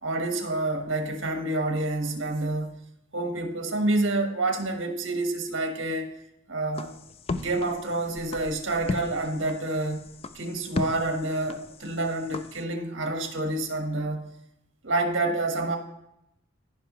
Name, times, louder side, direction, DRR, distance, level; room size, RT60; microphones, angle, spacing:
voice 1, 0.0-2.7 3.1-6.1 6.5-7.0 7.3-10.0 10.3-14.2 14.8-15.8, right 2 dB, 90° right, 4 dB, 1.4 m, -28 dB
sound 1, 6.7-12.6, left 3 dB, 30° left, 0.3 m, -36 dB
14.5 x 5.7 x 3.1 m, 0.84 s
head